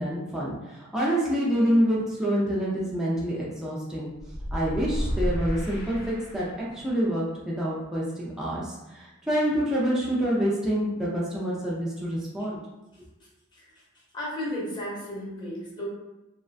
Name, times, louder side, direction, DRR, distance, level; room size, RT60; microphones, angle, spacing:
voice 1, 0.0-4.1 4.5-12.6, equal, 5° right, -7 dB, 0.4 m, -27 dB
sound 1, 4.2-6.8, equal, 55° left, 0.5 m, -31 dB
voice 2, 13.5-13.8 14.1-15.8, left 1 dB, 20° left, -6 dB, 0.8 m, -34 dB
2.3 x 2.1 x 2.5 m, 1.0 s
head